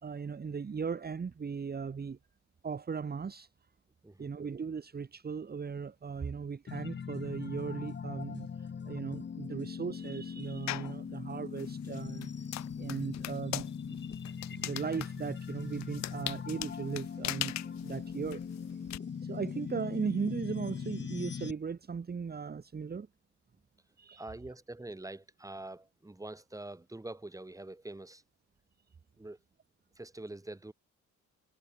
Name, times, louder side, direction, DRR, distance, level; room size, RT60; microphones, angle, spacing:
voice 1, 0.0-2.2 2.6-3.5 4.2-12.3 12.8-14.0 14.5-17.5 17.8-18.4 19.2-23.1 24.0-24.2, right 5 dB, 30° right, 1.6 m, -37 dB
sound 1, 6.7-21.5, left 6 dB, 35° left, 1.6 m, -40 dB
sound 2, 10.7-11.0 11.6-19.0, left 16 dB, 65° left, 0.5 m, -40 dB
Drill, 13.8-21.6, right 13 dB, 85° right, 7.7 m, -73 dB
voice 2, 24.2-28.2 29.2-29.4 30.0-30.7, right 2 dB, 10° right, 3.1 m, -45 dB
cardioid pair, 90°, 30 cm